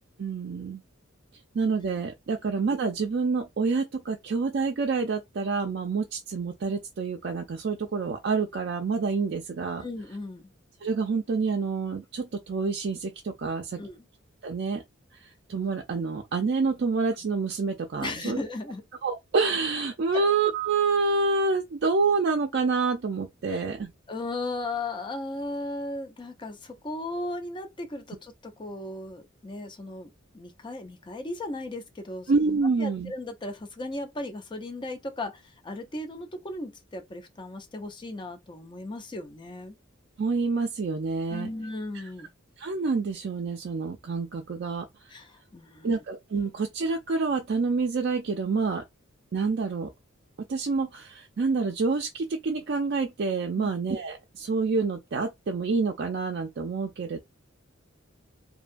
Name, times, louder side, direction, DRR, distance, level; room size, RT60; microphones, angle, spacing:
voice 1, 0.2-0.8 1.5-9.8 10.8-13.8 14.4-14.8 15.2-18.4 19.0-23.9 32.3-33.1 40.2-41.5 42.6-44.8 45.8-48.8 49.3-49.9 50.5-57.2, right 4 dB, 55° right, 0.4 m, -27 dB
voice 2, 9.8-10.5 13.8-14.1 18.0-18.8 20.1-20.3 23.5-23.6 24.1-30.1 30.3-32.3 32.8-39.7 41.3-42.3 45.1-45.9 53.6-53.7, left 2 dB, 25° left, 0.5 m, -36 dB
2.7 x 2.2 x 2.5 m
head